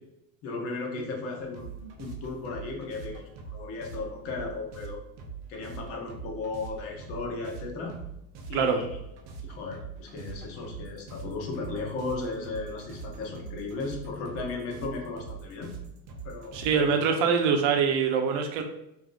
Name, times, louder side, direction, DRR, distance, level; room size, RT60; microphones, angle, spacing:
voice 1, 0.4-5.0 5.5-8.0 8.5-8.9 9.4-15.7 16.2-17.0, left 3 dB, 40° left, 2 dB, 0.7 m, -36 dB
sound 1, 1.4-16.7, right 5 dB, 45° right, 0.6 m, -43 dB
voice 2, 16.5-18.6, right 6 dB, 80° right, 5 dB, 0.7 m, -24 dB
3.5 x 2.7 x 3.7 m, 0.83 s
cardioid pair, 180°, 36 cm